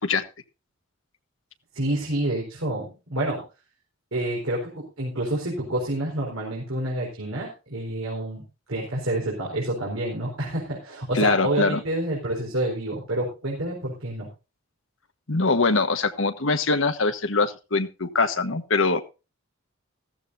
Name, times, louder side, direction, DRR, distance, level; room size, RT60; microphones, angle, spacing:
voice 1, 1.7-3.4 4.1-8.4 8.7-14.3, right 1 dB, 70° right, -3 dB, 4.6 m, -28 dB
voice 2, 11.1-11.8 15.3-19.1, left 3 dB, 65° left, 9 dB, 1.3 m, -23 dB
15.0 x 14.5 x 2.6 m, 0.29 s
head